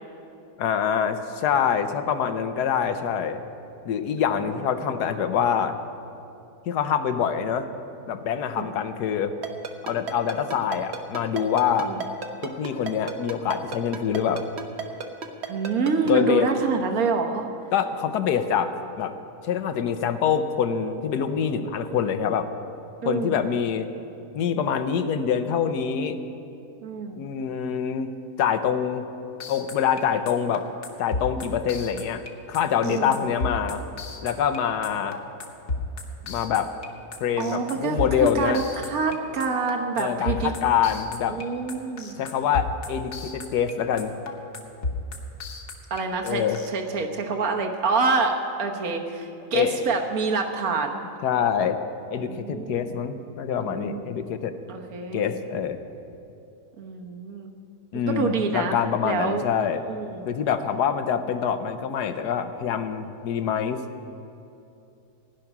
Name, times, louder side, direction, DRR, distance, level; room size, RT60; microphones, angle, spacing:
voice 1, 0.6-3.4 3.9-5.8 6.7-7.7 8.1-9.3 9.8-11.9 12.4-14.4 16.1-16.5 17.7-19.1 19.4-22.5 23.0-23.9 24.3-26.2 27.2-28.1 28.4-29.1 29.5-30.7 31.0-33.8 34.2-35.2 36.3-36.7 37.2-38.6 40.0-41.4 42.2-44.2 46.2-46.6 49.5-49.9 51.2-51.8 52.1-54.5 55.1-55.8 57.9-59.8 60.2-63.8, left 8 dB, 90° left, 9 dB, 1.3 m, -25 dB
Ringtone, 9.4-16.1, right 6 dB, 50° right, 1.1 m, -32 dB
voice 2, 15.5-17.5 23.0-23.4 26.8-27.2 32.8-33.2 37.4-40.5 41.3-42.2 45.9-51.0 52.2-53.0 53.6-54.2 54.7-55.3 56.8-57.5 58.1-59.5 59.9-60.2, right 4 dB, 65° right, 3 dB, 1.6 m, -27 dB
sound 1, 29.4-46.7, left 3 dB, 55° left, 1.5 m, -32 dB
16.0 x 6.0 x 9.9 m, 2.8 s
omnidirectional pair, 1.7 m